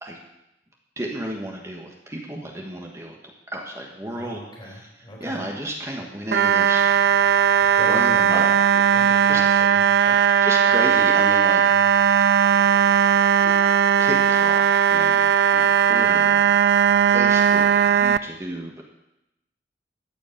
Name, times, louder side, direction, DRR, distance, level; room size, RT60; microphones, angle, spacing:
voice 1, 1.0-4.4 4.7-4.9 5.2-7.4 7.8-8.4 9.2-9.4 9.7-9.8 10.4-12.3 12.5-12.8 13.4-13.6 14.0-18.8, right 1 dB, 15° right, -1 dB, 1.3 m, -33 dB
voice 2, 4.0-5.5 7.5-8.5 8.9-10.4, left 1 dB, 25° left, -3 dB, 3.9 m, -39 dB
sound 1, 6.3-18.2, right 8 dB, 60° right, 0.3 m, -18 dB
14.0 x 5.2 x 8.6 m, 0.89 s
head